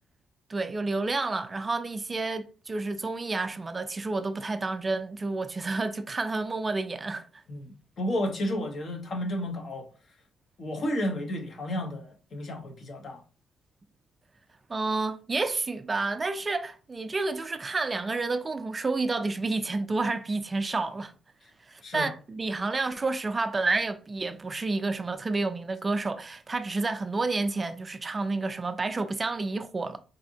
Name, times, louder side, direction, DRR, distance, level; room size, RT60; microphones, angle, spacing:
voice 1, 0.5-7.3 14.7-21.1 21.7-30.0, right 3 dB, 25° right, 0.3 m, -30 dB
voice 2, 7.5-9.9 10.6-13.2 21.8-22.1, left 1 dB, 50° left, 1.0 m, -32 dB
4.1 x 2.7 x 2.8 m
cardioid pair, 90°, 0 cm